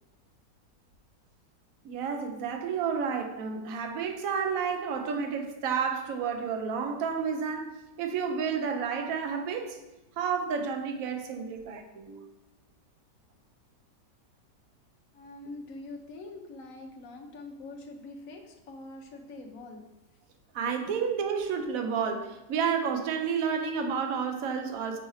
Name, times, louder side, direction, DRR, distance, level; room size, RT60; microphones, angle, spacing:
voice 1, 1.8-9.8 10.2-12.3 20.5-25.0, right 6 dB, 60° right, 5 dB, 1.1 m, -31 dB
voice 2, 15.1-19.8, left 2 dB, 55° left, 3 dB, 1.2 m, -44 dB
5.5 x 4.3 x 4.8 m, 0.97 s
omnidirectional pair, 1.8 m